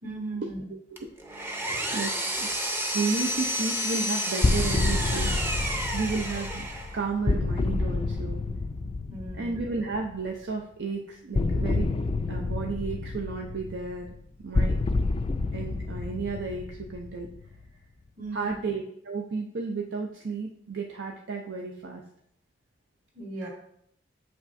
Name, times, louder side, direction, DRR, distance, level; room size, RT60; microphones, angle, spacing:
voice 1, 0.0-0.6 9.1-9.6 18.2-18.6 23.1-23.5, right 3 dB, 50° right, -3 dB, 2.1 m, -37 dB
Power tool, 1.0-7.0, equal, 10° right, 0.6 m, -30 dB
voice 2, 1.6-2.5 2.9-5.3 5.9-6.7 6.9-8.4 9.3-11.9 12.3-14.1 14.4-14.8 15.5-17.3 18.3-22.0, right 4 dB, 70° right, 2 dB, 0.6 m, -32 dB
sound 1, 4.4-10.2 11.3-17.6, left 3 dB, 30° left, 0.3 m, -29 dB
7.4 x 5.8 x 2.6 m, 0.71 s
head